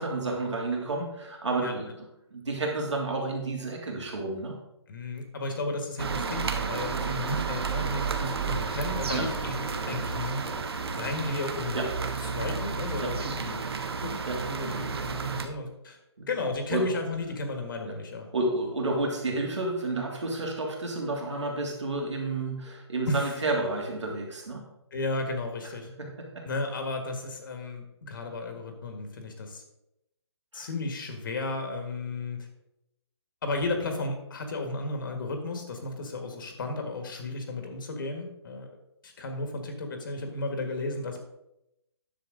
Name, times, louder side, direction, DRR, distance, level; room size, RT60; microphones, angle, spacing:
voice 1, 0.0-4.6 9.1-9.3 11.7-11.9 13.0-13.1 14.2-14.8 16.2-17.0 17.8-18.0 18.3-24.6 26.0-26.4 30.5-30.7, right 2 dB, 85° right, 0 dB, 3.0 m, -31 dB
voice 2, 4.9-10.4 10.9-11.8 12.3-13.7 14.0-14.2 14.5-16.0 16.3-18.3 23.1-23.3 24.9-25.9 26.4-29.6 30.5-32.4 33.4-38.7 39.0-41.2, left 2 dB, 50° left, 5 dB, 1.7 m, -33 dB
sound 1, 6.0-15.5, right 5 dB, 60° right, 1.2 m, -32 dB
10.5 x 7.3 x 3.9 m, 0.87 s
hypercardioid pair, 160°, 15 cm